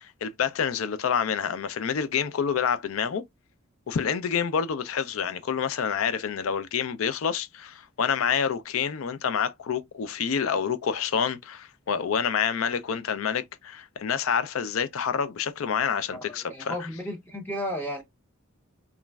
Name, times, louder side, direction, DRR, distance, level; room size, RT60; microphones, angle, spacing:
voice 1, 0.0-3.2 3.9-16.7, left 7 dB, 75° left, 0.4 m, -28 dB
voice 2, 16.1-18.0, equal, 10° left, 0.6 m, -34 dB
3.0 x 2.4 x 2.2 m
head